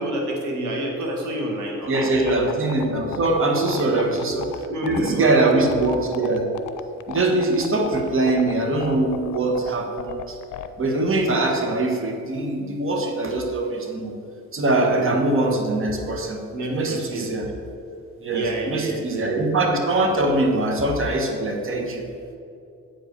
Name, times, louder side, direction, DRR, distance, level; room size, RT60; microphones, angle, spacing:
voice 1, 0.0-2.4 3.8-4.2 4.7-5.6 14.9-15.1 16.5-17.3 18.3-19.5, right 1 dB, 75° right, 0 dB, 1.9 m, -29 dB
sound 1, 1.8-10.7, left 11 dB, 80° left, 0.5 m, -35 dB
voice 2, 1.9-6.5 7.1-10.2 10.8-14.1 14.5-16.4 16.7-17.5 18.2-22.0, right 2 dB, 45° right, 2 dB, 1.5 m, -22 dB
8.4 x 5.0 x 6.8 m, 2.6 s
cardioid pair, 90°, 30 cm